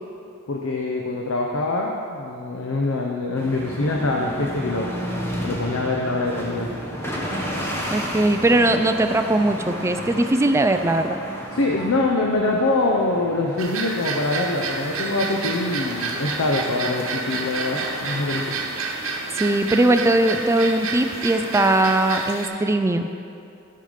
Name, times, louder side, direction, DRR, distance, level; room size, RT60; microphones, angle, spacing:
voice 1, 0.5-4.9 5.4-6.7 11.5-18.6, left 2 dB, 80° left, 0 dB, 0.7 m, -24 dB
sound 1, 3.4-22.0, equal, 10° left, 1.2 m, -34 dB
voice 2, 7.9-11.2 19.3-23.1, right 1 dB, 15° right, 7 dB, 0.4 m, -20 dB
sound 2, 13.6-22.5, right 4 dB, 85° right, 1.1 m, -29 dB
12.0 x 5.7 x 5.0 m, 2.6 s
head